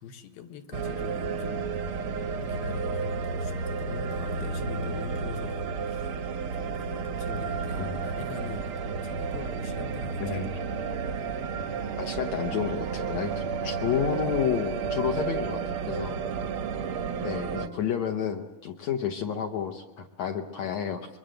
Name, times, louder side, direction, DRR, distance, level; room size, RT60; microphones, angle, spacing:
voice 1, 0.0-1.8 2.4-6.2 6.5-10.5, left 5 dB, 80° left, 8 dB, 3.2 m, -43 dB
sound 1, 0.7-17.7, right 5 dB, 70° right, 1.3 m, -32 dB
voice 2, 10.2-10.5 12.0-16.2 17.2-21.1, left 8 dB, 65° left, 4 dB, 1.9 m, -31 dB
25.0 x 23.0 x 7.8 m, 0.97 s
omnidirectional pair, 4.2 m